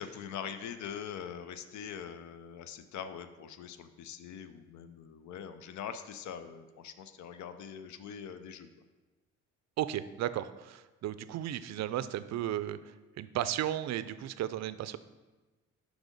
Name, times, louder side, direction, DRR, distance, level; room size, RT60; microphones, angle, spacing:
voice 1, 0.0-8.8, left 8 dB, 70° left, 10 dB, 0.6 m, -43 dB
voice 2, 9.8-15.0, right 12 dB, 65° right, 14 dB, 0.4 m, -35 dB
6.1 x 5.0 x 5.1 m, 1.2 s
cardioid pair, 90°, 30 cm